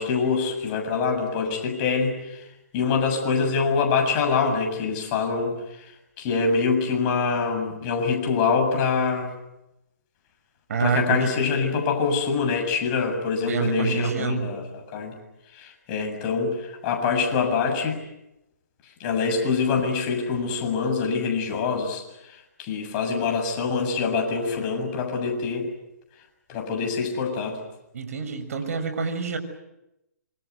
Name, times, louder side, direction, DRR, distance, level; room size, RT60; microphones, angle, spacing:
voice 1, 0.0-2.5 2.7-9.3 10.8-15.2 15.5-18.0 18.8-25.7 26.5-27.6, left 5 dB, 30° left, 4 dB, 7.4 m, -25 dB
voice 2, 10.7-11.3 13.5-14.5 27.9-29.4, right 5 dB, 55° right, 6 dB, 6.6 m, -26 dB
27.5 x 25.0 x 8.4 m, 0.90 s
hypercardioid pair, 145°, 9 cm